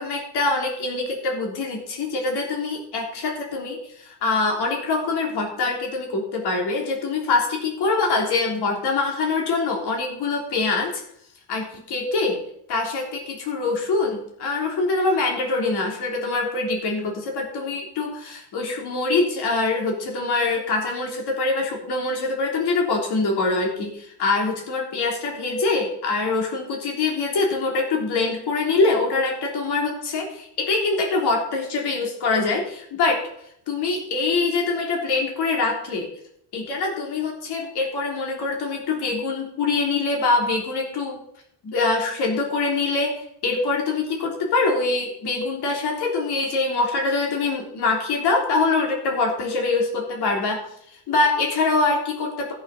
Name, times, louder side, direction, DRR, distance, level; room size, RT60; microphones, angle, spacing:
voice 1, 0.0-11.0 11.5-12.4 12.7-33.2 33.7-36.1 36.5-41.2 41.6-52.5, left 3 dB, 75° left, 0 dB, 3.3 m, -24 dB
13.5 x 6.6 x 6.5 m, 0.70 s
cardioid pair, 160°, 40 cm